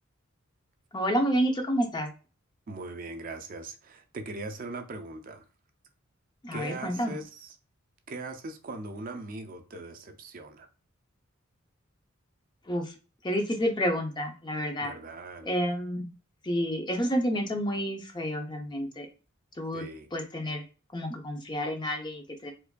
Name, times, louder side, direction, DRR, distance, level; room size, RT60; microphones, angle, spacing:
voice 1, 0.9-2.1 6.4-7.1 12.7-12.9 13.2-14.9 15.5-16.1 16.4-19.1 19.6-19.8 20.1-20.6 20.9-22.5, equal, 20° left, 0.6 m, -29 dB
voice 2, 2.7-5.5 6.5-7.6 8.1-10.7 14.8-15.6 19.7-20.1, right 2 dB, 45° right, 0.5 m, -40 dB
4.6 x 2.5 x 2.2 m
head